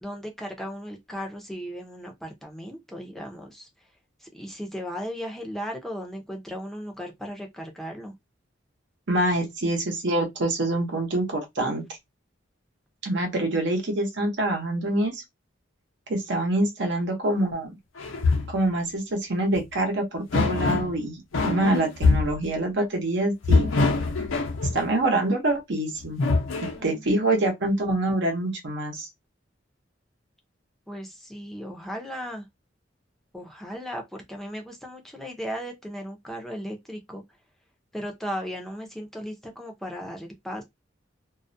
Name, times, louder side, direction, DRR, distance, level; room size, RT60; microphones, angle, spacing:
voice 1, 0.0-3.7 4.2-8.1 26.8-27.5 30.9-32.5 33.3-37.2 37.9-40.6, equal, ahead, 0.5 m, -36 dB
voice 2, 9.1-11.8 13.0-15.2 16.1-17.8 18.5-23.7 24.7-26.2 26.6-29.1, right 1 dB, 65° right, 0.8 m, -25 dB
sound 1, 18.0-18.6 19.5-19.6 20.3-21.0 21.3-22.4 23.4-24.9 26.0-26.8, left 3 dB, 85° left, 0.6 m, -23 dB
2.3 x 2.1 x 2.5 m
head